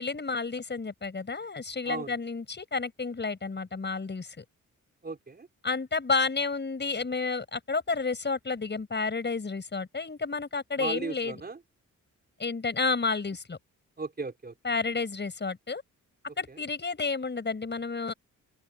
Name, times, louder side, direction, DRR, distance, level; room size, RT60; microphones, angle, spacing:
voice 1, 0.0-4.4 5.6-11.3 12.4-13.6 14.6-15.8 16.4-18.1, left 4 dB, 35° left, 6.9 m, -31 dB
voice 2, 5.0-5.5 10.8-11.6 14.0-14.5 16.5-16.6, right 4 dB, 30° right, 3.9 m, -36 dB
open air
cardioid pair, 100°, 32 cm